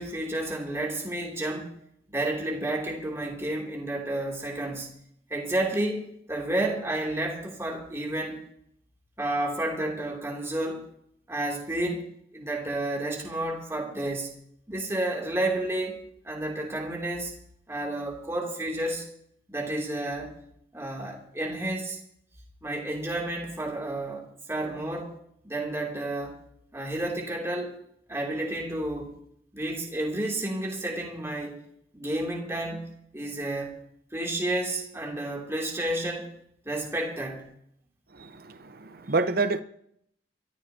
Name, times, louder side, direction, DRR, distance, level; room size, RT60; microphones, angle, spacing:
voice 1, 0.0-1.7 2.1-4.9 5.3-8.4 9.2-10.8 11.3-12.1 12.3-14.4 14.7-16.0 16.2-17.3 17.7-19.1 19.5-20.4 20.7-22.0 22.6-25.1 25.4-26.4 26.7-27.8 28.1-29.2 29.5-31.7 31.9-32.9 33.1-33.8 34.1-36.3 36.6-37.5, right 1 dB, 15° right, 2.9 m, -31 dB
voice 2, 38.2-39.6, right 3 dB, 55° right, 0.9 m, -28 dB
24.0 x 14.0 x 2.9 m
head